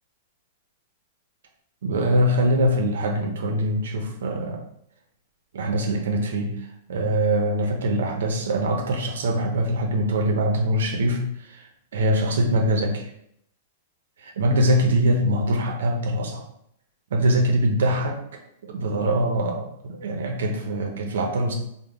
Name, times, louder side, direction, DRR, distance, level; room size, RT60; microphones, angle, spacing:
voice 1, 1.8-4.6 5.5-13.1 14.2-16.4 17.1-18.2 18.6-21.5, right 1 dB, 85° right, 3 dB, 0.5 m, -23 dB
3.5 x 2.1 x 3.4 m, 0.75 s
supercardioid pair, 160°, 0 cm